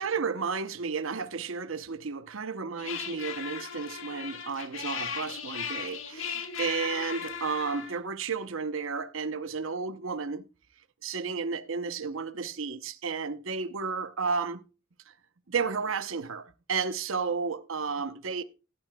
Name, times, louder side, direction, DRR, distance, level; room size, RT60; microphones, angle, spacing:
voice 1, 0.0-10.4 11.0-14.6 15.1-15.2 15.5-18.4, right 5 dB, 70° right, 0.8 m, -32 dB
sound 1, 2.8-8.0, left 7 dB, 75° left, 1.7 m, -37 dB
16.5 x 11.0 x 2.3 m
head